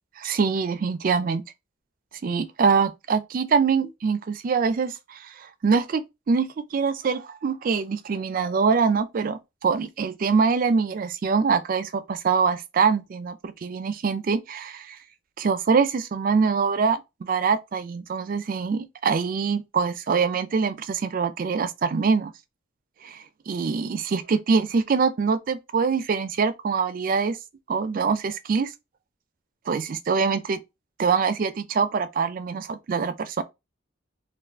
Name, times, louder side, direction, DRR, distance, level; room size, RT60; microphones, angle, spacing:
voice 1, 0.2-1.4 2.2-15.0 15.4-22.3 23.0-23.2 23.5-27.4 27.7-28.7 29.7-30.6 31.0-33.4, right 5 dB, 45° right, 0.3 m, -24 dB
2.4 x 2.3 x 3.3 m
head